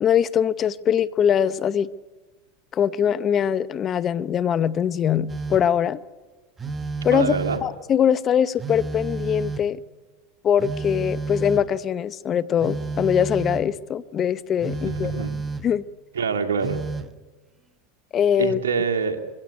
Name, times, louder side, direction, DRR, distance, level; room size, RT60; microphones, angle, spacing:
voice 1, 0.0-1.9 2.7-6.0 7.0-7.3 7.6-9.8 10.4-15.2 15.6-15.8 18.1-18.6, left 8 dB, 35° left, 0.8 m, -22 dB
Telephone, 5.3-5.8 6.6-7.8 8.6-9.8 10.6-11.8 12.6-13.7 14.6-15.8 16.6-17.2, right 3 dB, 20° right, 1.2 m, -31 dB
voice 2, 7.1-7.6 14.8-15.3 16.1-16.8 18.4-19.2, right 5 dB, 85° right, 2.2 m, -25 dB
23.5 x 16.5 x 9.7 m
hypercardioid pair, 100°, 0 cm